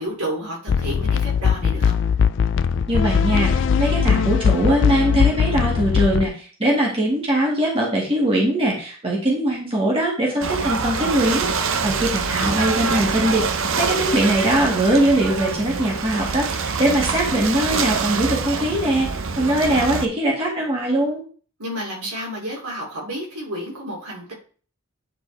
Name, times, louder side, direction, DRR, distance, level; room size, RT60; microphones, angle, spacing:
voice 1, 0.0-1.9 12.3-12.8 21.6-24.3, equal, 85° right, -3 dB, 3.0 m, -31 dB
sound 1, 0.7-6.3, left 7 dB, 55° left, 0.3 m, -20 dB
voice 2, 2.9-21.2, right 1 dB, 25° right, -3 dB, 1.9 m, -21 dB
Ocean / Boat Water vehicle, 10.4-20.1, right 5 dB, 60° right, 0.6 m, -25 dB
9.8 x 4.3 x 3.4 m, 0.41 s
head